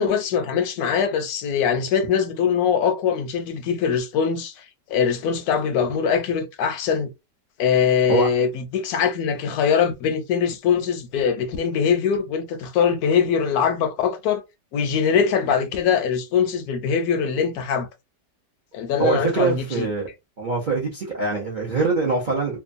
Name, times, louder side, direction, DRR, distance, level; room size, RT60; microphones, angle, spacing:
voice 1, 0.0-7.1 7.6-14.4 14.7-17.9 18.7-19.9, left 7 dB, 70° left, 1.0 m, -22 dB
voice 2, 19.0-20.1 20.4-22.6, right 4 dB, 60° right, 0.5 m, -23 dB
2.9 x 2.2 x 2.5 m
omnidirectional pair, 1.8 m